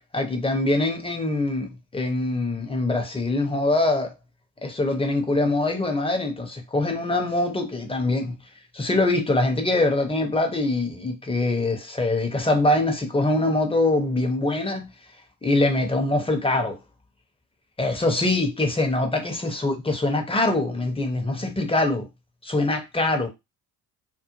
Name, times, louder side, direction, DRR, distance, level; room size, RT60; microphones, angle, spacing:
voice 1, 0.1-4.1 4.6-8.3 8.7-14.9 15.4-16.8 17.8-22.1 22.4-23.3, left 2 dB, 10° left, 0.8 m, -23 dB
2.4 x 2.2 x 3.0 m
hypercardioid pair, 50°, 48 cm